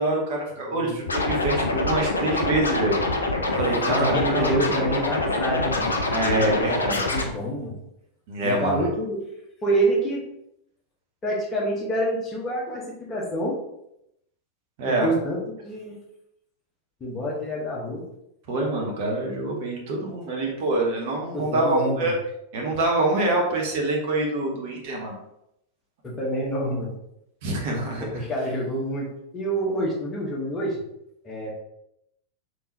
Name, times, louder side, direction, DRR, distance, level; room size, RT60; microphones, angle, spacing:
voice 1, 0.0-3.0 3.5-4.6 6.1-7.0 8.3-8.9 14.8-15.1 18.5-22.2 22.5-25.2 27.4-28.2, right 2 dB, 50° right, -1 dB, 0.9 m, -25 dB
voice 2, 0.7-1.0 3.8-6.0 6.2-6.7 7.1-7.8 8.4-9.2 9.6-10.2 11.2-13.6 14.9-15.9 17.0-18.0 21.3-22.1 26.0-26.9 28.0-29.1 29.3-30.8 31.2-31.5, right 1 dB, 20° left, -3 dB, 1.1 m, -27 dB
Scratching (performance technique), 1.1-7.2, left 2 dB, 75° left, 0.5 m, -25 dB
3.5 x 2.9 x 2.8 m, 0.80 s
figure-of-eight pair, 90°, 0 cm